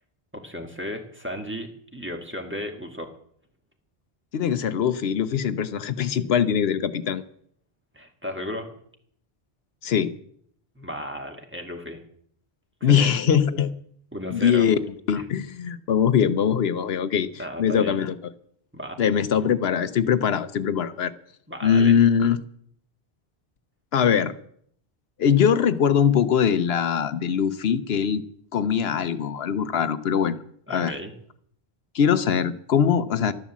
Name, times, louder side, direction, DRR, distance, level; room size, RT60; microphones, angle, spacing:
voice 1, 0.3-3.1 7.9-8.7 10.8-12.0 12.8-13.1 14.1-14.7 15.2-15.3 17.4-18.0 18.7-19.0 21.5-22.0 30.7-31.1, left 1 dB, 10° right, 3 dB, 1.8 m, -34 dB
voice 2, 4.3-7.2 9.8-10.2 12.8-13.7 14.3-14.8 15.1-18.1 19.0-21.1 21.6-22.4 23.9-24.3 25.2-28.2 28.5-30.4 30.7-30.9 31.9-33.3, left 8 dB, 75° left, 12 dB, 1.0 m, -22 dB
13.0 x 11.0 x 7.3 m, 0.65 s
omnidirectional pair, 1.0 m